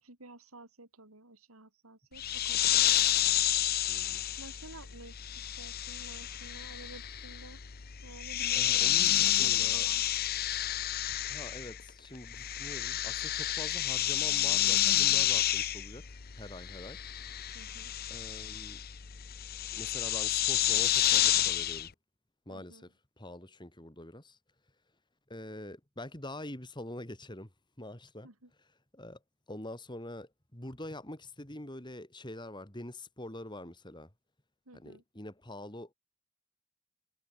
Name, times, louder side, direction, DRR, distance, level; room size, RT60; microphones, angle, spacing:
voice 1, 0.0-2.7 4.4-7.6 8.0-10.0 17.5-17.9 22.5-22.8 28.2-28.5 34.7-35.0, right 2 dB, 85° right, 4.4 m, -52 dB
sound 1, 2.2-11.9 12.1-21.9, left 12 dB, 45° left, 0.7 m, -30 dB
voice 2, 3.9-4.2 8.6-9.8 11.3-16.0 16.4-17.0 18.1-18.8 19.7-21.9 22.5-22.9 23.2-24.4 25.3-27.5 27.8-28.3 28.9-29.2 29.5-34.1 34.7-35.9, left 1 dB, 20° left, 3.5 m, -45 dB
head